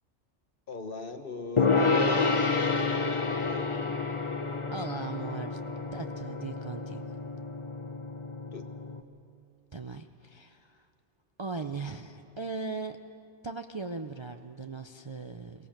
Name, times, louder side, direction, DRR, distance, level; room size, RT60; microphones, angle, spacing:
voice 1, 0.7-2.9 3.3-3.7 8.5-8.7, left 3 dB, 50° left, 7 dB, 1.4 m, -41 dB
Gong, 1.6-9.0, left 4 dB, 30° left, 0.8 m, -29 dB
voice 2, 4.7-5.6 5.9-7.2 9.7-10.9 11.4-13.0 13.4-15.7, right 4 dB, 35° right, 5 dB, 0.5 m, -38 dB
23.0 x 18.0 x 7.4 m, 2.5 s
omnidirectional pair, 1.2 m